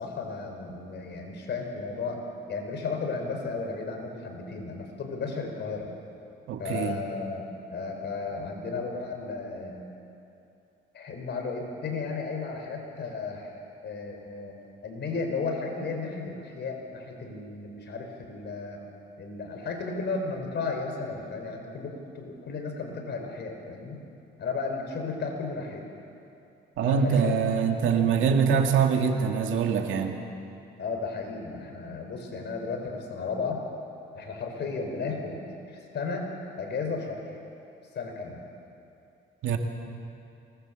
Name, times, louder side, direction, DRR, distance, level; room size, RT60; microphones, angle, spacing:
voice 1, 0.0-2.2 2.5-5.9 6.6-9.8 10.9-13.5 13.8-18.8 19.2-24.0 24.4-25.8 26.8-27.3 27.7-28.1 30.8-33.6 34.1-35.4 35.7-36.3 36.6-37.4 37.9-38.4, left 4 dB, 60° left, 3 dB, 4.8 m, -34 dB
voice 2, 6.5-7.0 26.8-30.1 39.4-39.6, right 6 dB, 85° right, 4 dB, 2.2 m, -24 dB
24.5 x 19.5 x 7.7 m, 2.7 s
cardioid pair, 90°, 20 cm